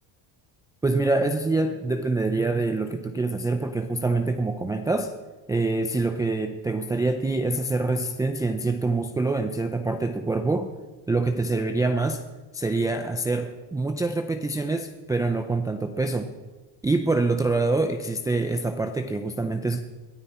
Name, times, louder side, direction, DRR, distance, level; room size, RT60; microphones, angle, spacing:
voice 1, 0.8-5.1 5.5-10.7 11.1-12.2 12.5-16.3 16.8-19.8, right 3 dB, 10° right, 5 dB, 0.4 m, -25 dB
22.0 x 13.5 x 4.3 m, 1.2 s
cardioid pair, 165°, 49 cm